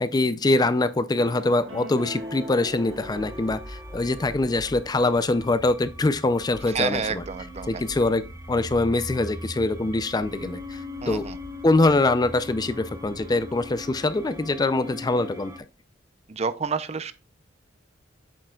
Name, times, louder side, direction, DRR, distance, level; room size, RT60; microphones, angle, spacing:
voice 1, 0.0-7.2 7.7-11.2 11.6-15.5, left 2 dB, 20° left, 0.4 m, -24 dB
sound 1, 1.2-4.4, equal, 70° right, 1.8 m, -40 dB
sound 2, 2.0-15.6, left 1 dB, 15° right, 1.0 m, -40 dB
voice 2, 6.6-7.8 11.0-11.4 16.3-17.1, right 5 dB, 35° right, 0.5 m, -29 dB
8.5 x 6.3 x 2.3 m
head